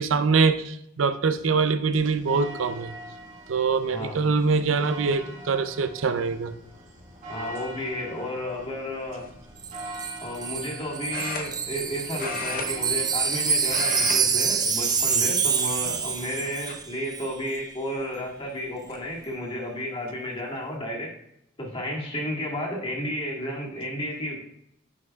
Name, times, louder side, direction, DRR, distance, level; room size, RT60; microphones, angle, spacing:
voice 1, 0.0-2.9 3.5-6.5, right 4 dB, 80° right, 11 dB, 0.5 m, -24 dB
sound 1, 1.9-16.8, right 1 dB, 40° right, 1.6 m, -43 dB
voice 2, 3.9-4.2 7.3-9.3 10.2-21.1 21.6-24.4, equal, 30° left, -2 dB, 1.8 m, -32 dB
sound 2, 9.2-9.5 11.1-11.9 12.2-13.4 13.6-14.2 14.5-14.8 15.5-16.1 16.7-16.8 18.2-18.3 18.6-19.0, left 4 dB, 45° left, 0.8 m, -35 dB
Wind chime, 9.6-16.9 17.1-17.3, right 6 dB, 20° right, 0.5 m, -26 dB
9.4 x 5.4 x 2.3 m, 0.74 s
head